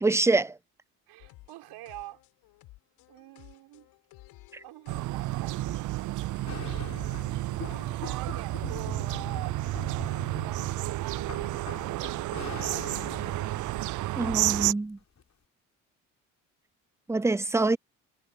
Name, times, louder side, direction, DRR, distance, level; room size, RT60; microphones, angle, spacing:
voice 1, 0.0-0.5 14.2-15.0 17.1-17.8, right 3 dB, 5° right, 0.6 m, -25 dB
voice 2, 1.1-2.2 3.1-3.9 4.6-5.6 7.9-11.3, right 17 dB, 70° right, 6.1 m, -45 dB
sound 1, 1.2-6.5, left 19 dB, 70° left, 6.9 m, -55 dB
sound 2, 4.9-14.7, right 17 dB, 50° right, 0.5 m, -31 dB
sound 3, 6.5-14.6 15.2-15.3, left 6 dB, 40° left, 6.2 m, -43 dB
hypercardioid pair, 55°, 41 cm